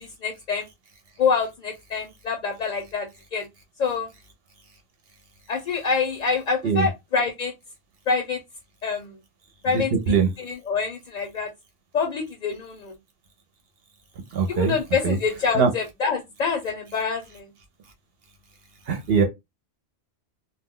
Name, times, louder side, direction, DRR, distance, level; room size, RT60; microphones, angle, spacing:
voice 1, 0.2-0.7 1.2-3.4 3.8-4.1 5.5-7.5 8.1-8.4 8.8-9.2 9.6-11.5 11.9-12.9 14.5-17.5, left 5 dB, 50° left, 0.7 m, -26 dB
voice 2, 14.3-14.7 15.0-15.2 15.5-15.7 18.9-19.2, right 6 dB, 65° right, 0.8 m, -21 dB
2.3 x 2.2 x 3.5 m
omnidirectional pair, 1.1 m